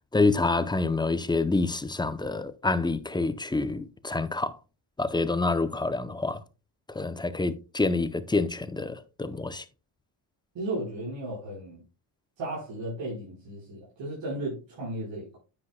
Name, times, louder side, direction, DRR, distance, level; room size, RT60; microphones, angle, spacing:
voice 1, 0.1-4.5 5.0-6.4 6.9-9.6, left 3 dB, 10° left, 0.6 m, -27 dB
voice 2, 10.6-11.8 12.4-15.4, right 1 dB, 75° right, 5.0 m, -35 dB
9.7 x 8.6 x 2.2 m
cardioid pair, 115°, 45 cm